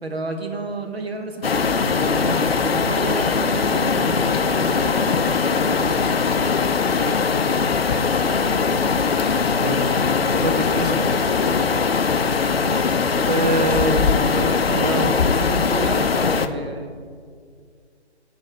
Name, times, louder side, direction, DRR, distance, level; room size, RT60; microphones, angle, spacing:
voice 1, 0.0-6.2 13.6-16.9, right 2 dB, 60° right, 4 dB, 1.1 m, -31 dB
sound 1, 1.4-16.5, left 5 dB, 60° left, 0.5 m, -20 dB
voice 2, 9.6-9.9 10.3-11.0 13.2-15.2, right 1 dB, 35° right, 4 dB, 0.6 m, -25 dB
11.5 x 5.3 x 5.0 m, 2.1 s
figure-of-eight pair, 145°, 35 cm